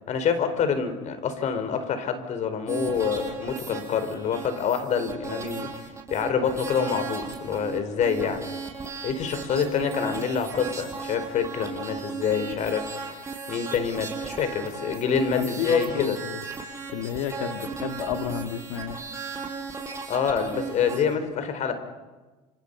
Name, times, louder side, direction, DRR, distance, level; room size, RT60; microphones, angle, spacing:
voice 1, 0.1-5.7 6.1-8.5 9.0-13.2 13.5-16.2 20.1-21.7, left 6 dB, 50° left, 9 dB, 4.7 m, -26 dB
sound 1, 2.7-21.2, right 4 dB, 20° right, 6.1 m, -36 dB
voice 2, 15.3-16.4 16.9-19.0, left 9 dB, 85° left, 7 dB, 2.0 m, -31 dB
29.5 x 27.0 x 5.6 m, 1.2 s
supercardioid pair, 100°, 16 cm